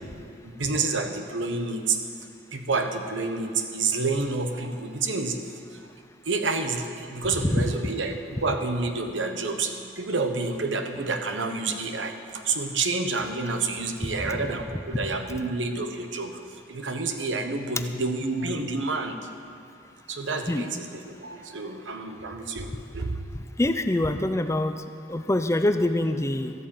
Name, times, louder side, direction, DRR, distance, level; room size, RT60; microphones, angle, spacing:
voice 1, 0.4-2.0 2.5-5.4 5.7-5.9 6.2-19.2 20.1-23.1, right 3 dB, 75° right, 6 dB, 1.1 m, -29 dB
voice 2, 23.6-24.7 25.1-26.5, left 1 dB, 15° left, 8 dB, 0.5 m, -24 dB
13.0 x 8.6 x 7.7 m, 2.5 s
head